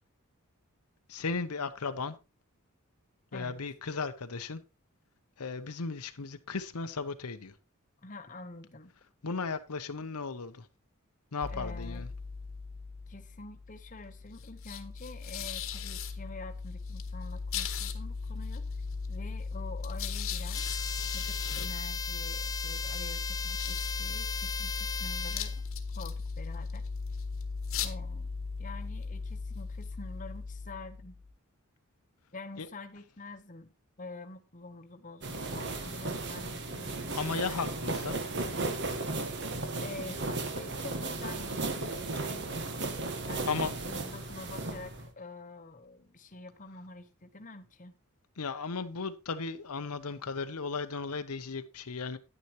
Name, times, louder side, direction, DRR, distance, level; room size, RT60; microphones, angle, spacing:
voice 1, 1.1-2.1 3.3-4.6 5.4-7.5 9.2-10.7 11.3-12.1 32.6-32.7 35.9-36.0 37.1-38.2 43.5-43.7 48.4-52.2, left 4 dB, 85° left, 0.9 m, -35 dB
voice 2, 8.0-8.9 11.5-12.1 13.1-18.7 19.1-20.7 21.1-25.5 25.9-26.8 27.8-28.3 28.6-31.2 32.3-33.7 34.0-37.2 39.8-42.5 43.2-47.9, left 2 dB, 35° left, 1.1 m, -47 dB
sound 1, 11.4-31.3, left 5 dB, 65° left, 1.3 m, -37 dB
sound 2, 20.5-25.6, left 5 dB, 15° left, 0.6 m, -37 dB
sound 3, 35.2-45.1, right 2 dB, 55° right, 1.4 m, -35 dB
10.0 x 9.6 x 3.1 m
head